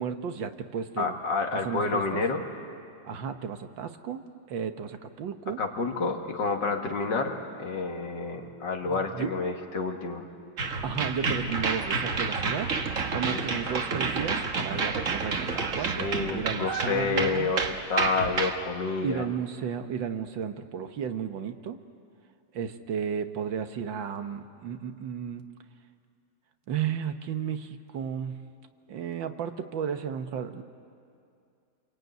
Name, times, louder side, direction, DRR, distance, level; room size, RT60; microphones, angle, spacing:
voice 1, 0.0-1.2 1.5-2.2 3.0-5.6 8.8-9.3 10.8-12.7 13.1-16.0 16.3-17.5 19.0-21.8 22.5-25.5 26.7-28.5 28.9-30.6, right 7 dB, 90° right, 8 dB, 1.9 m, -33 dB
voice 2, 1.0-2.4 5.6-10.2 13.2-13.4 15.8-19.2, left 4 dB, 70° left, 3 dB, 2.6 m, -29 dB
sound 1, 10.6-18.6, right 4 dB, 50° right, 1.6 m, -29 dB
28.0 x 22.5 x 9.3 m, 2.4 s
omnidirectional pair, 2.0 m